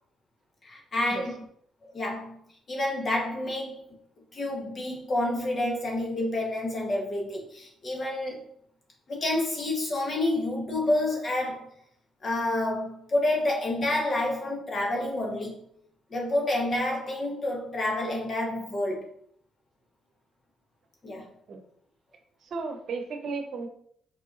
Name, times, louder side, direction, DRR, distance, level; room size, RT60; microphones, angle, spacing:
voice 1, 0.6-1.4 1.9-2.4 2.7-3.8 4.3-8.5 9.1-11.7 12.2-15.7 16.1-19.1 21.0-21.3, left 1 dB, 40° left, 0 dB, 1.0 m, -29 dB
voice 2, 22.4-23.7, right 4 dB, 60° right, 5 dB, 0.8 m, -34 dB
4.5 x 3.9 x 2.5 m, 0.65 s
cardioid pair, 90°, 0 cm